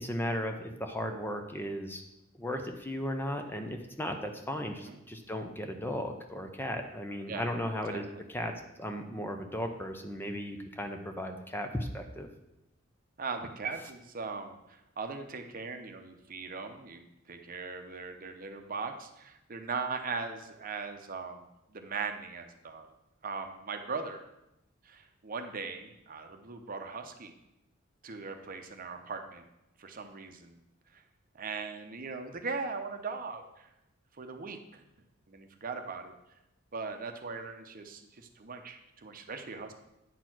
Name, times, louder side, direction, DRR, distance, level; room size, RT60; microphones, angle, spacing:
voice 1, 0.0-2.0 2.4-12.3, equal, 10° left, 5 dB, 0.7 m, -36 dB
voice 2, 7.9-8.2 13.2-22.9 23.2-24.2 24.8-27.3 28.0-29.4 29.8-30.6 30.9-31.0 31.3-33.7 34.2-34.8 35.3-36.1 36.7-39.7, right 4 dB, 45° right, 6 dB, 0.8 m, -39 dB
9.1 x 4.5 x 6.0 m, 0.90 s
head